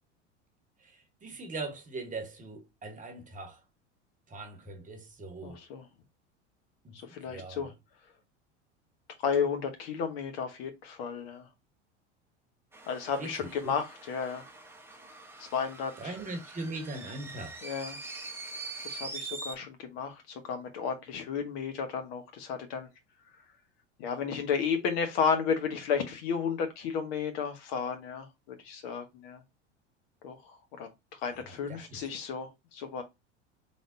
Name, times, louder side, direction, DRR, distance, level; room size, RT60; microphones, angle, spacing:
voice 1, 0.8-3.6 4.3-5.6 6.8-7.0 7.2-7.7 13.2-13.8 16.0-17.6 31.7-32.1, right 2 dB, 20° right, 1.1 m, -41 dB
voice 2, 5.4-5.9 6.9-7.7 9.2-11.5 12.9-14.4 15.4-16.1 17.6-18.0 18.8-22.9 24.0-29.4 30.2-33.0, left 6 dB, 50° left, 1.0 m, -33 dB
sound 1, 12.7-19.6, right 3 dB, 5° right, 0.8 m, -44 dB
3.9 x 3.4 x 2.5 m
figure-of-eight pair, 80°, 36 cm